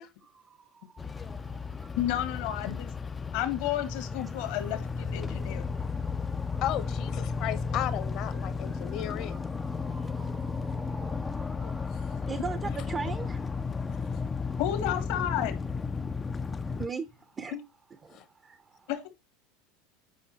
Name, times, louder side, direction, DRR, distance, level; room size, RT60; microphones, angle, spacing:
voice 1, 0.2-1.9 5.2-6.6 7.3-7.6 8.3-14.6 16.8-17.6 17.9-18.9, right 5 dB, 25° right, 0.7 m, -43 dB
sound 1, 1.0-16.9, left 5 dB, 20° left, 0.4 m, -34 dB
voice 2, 2.0-2.9 3.3-5.6 14.6-15.6 17.5-17.6 18.9-19.1, left 12 dB, 70° left, 1.7 m, -31 dB
voice 3, 6.6-9.4 11.5-11.7 14.1-14.3 18.1-18.2, left 12 dB, 55° left, 1.1 m, -35 dB
8.5 x 4.7 x 3.0 m
supercardioid pair, 110°, 0 cm